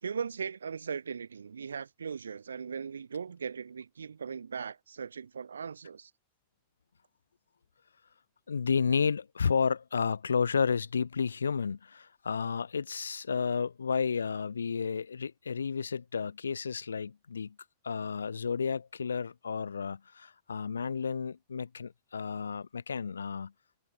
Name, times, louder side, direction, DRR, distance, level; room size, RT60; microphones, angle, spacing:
voice 1, 0.0-6.1, right 6 dB, 70° right, 3.3 m, -38 dB
voice 2, 8.5-17.6 17.8-23.5, left 6 dB, 75° left, 3.1 m, -31 dB
figure-of-eight pair, 90°, 0 cm